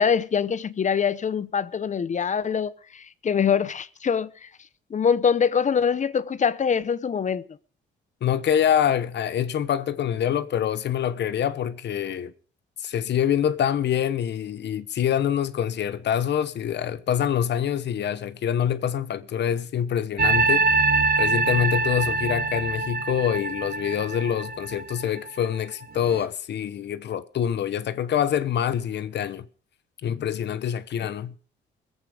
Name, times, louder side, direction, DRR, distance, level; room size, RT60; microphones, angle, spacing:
voice 1, 0.0-4.5 4.9-7.4, left 7 dB, 40° left, 0.8 m, -24 dB
voice 2, 8.2-12.3 12.8-20.7 21.2-29.5 30.0-31.3, left 9 dB, 60° left, 1.0 m, -25 dB
sound 1, 20.2-25.5 26.0-26.3, right 3 dB, 50° right, 1.1 m, -24 dB
21.5 x 8.3 x 5.0 m
cardioid pair, 90°, 20 cm